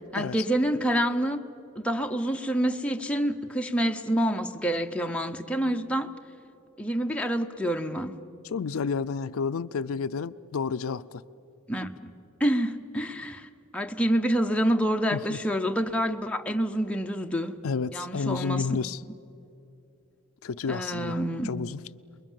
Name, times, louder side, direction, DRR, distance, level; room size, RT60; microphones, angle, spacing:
voice 1, 0.1-1.4 1.8-6.1 6.8-8.2 11.7-12.1 12.4-17.6 17.9-19.1 20.7-21.5, equal, 5° left, 0.8 m, -27 dB
voice 2, 8.4-11.0 15.1-15.4 17.6-19.0 20.4-21.2 21.4-21.8, left 5 dB, 75° left, 0.5 m, -30 dB
29.0 x 21.5 x 7.4 m
head